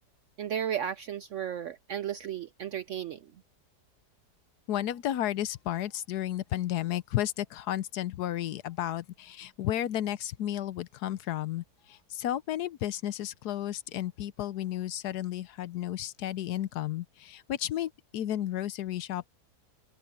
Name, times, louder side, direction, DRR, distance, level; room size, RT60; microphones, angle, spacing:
voice 1, 0.4-3.3, right 9 dB, 70° right, 0.7 m, -34 dB
voice 2, 4.7-19.3, left 12 dB, 75° left, 1.2 m, -33 dB
open air
omnidirectional pair, 1.8 m